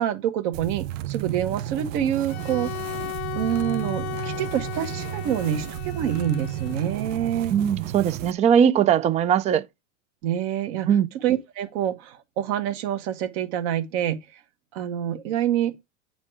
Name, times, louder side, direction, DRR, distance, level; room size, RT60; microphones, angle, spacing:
voice 1, 0.0-2.7 3.3-7.5 10.2-10.9 11.2-14.2 14.7-15.7, right 10 dB, 60° right, 1.5 m, -26 dB
sound 1, 0.5-8.3, right 13 dB, 75° right, 0.6 m, -33 dB
Bowed string instrument, 2.3-7.3, left 20 dB, 60° left, 0.6 m, -36 dB
voice 2, 7.5-9.7 10.9-11.1, right 8 dB, 20° right, 0.4 m, -20 dB
9.1 x 4.1 x 5.0 m
hypercardioid pair, 110°, 38 cm